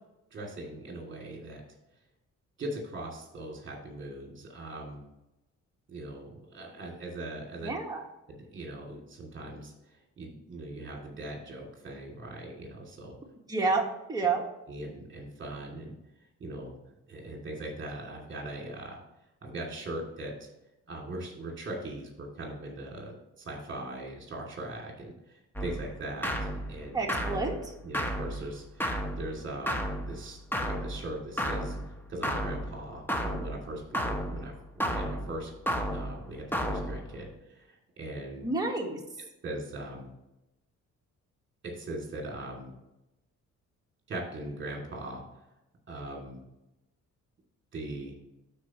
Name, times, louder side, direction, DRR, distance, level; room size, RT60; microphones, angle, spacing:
voice 1, 0.3-1.6 2.6-5.0 5.9-7.7 8.3-13.1 14.7-15.9 16.4-16.8 17.1-19.0 19.4-20.5 20.9-27.0 27.8-28.9 29.2-31.8 32.1-35.5 35.9-38.5 39.4-40.1 41.6-42.7 44.1-45.2 45.9-46.4 47.7-48.2, right 1 dB, 40° right, -1 dB, 2.8 m, -40 dB
voice 2, 7.6-8.0 13.5-14.4 26.9-27.7 38.4-39.0, right 3 dB, 10° right, 0 dB, 1.6 m, -29 dB
sound 1, 25.6-37.3, equal, 5° left, 1.1 m, -34 dB
12.0 x 4.7 x 3.1 m, 0.93 s
cardioid pair, 90°, 30 cm